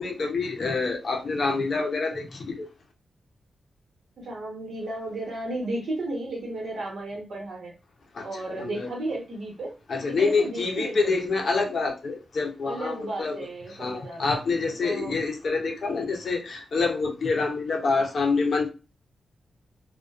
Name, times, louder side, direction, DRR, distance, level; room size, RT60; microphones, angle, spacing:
voice 1, 0.0-2.7 8.1-8.9 9.9-18.7, left 4 dB, 50° left, 0.5 m, -27 dB
voice 2, 4.2-7.7 8.2-9.7 10.1-11.1 12.6-14.2 14.8-15.2, right 2 dB, 60° right, 1.0 m, -34 dB
2.5 x 2.1 x 2.3 m
wide cardioid pair, 175°, 0 cm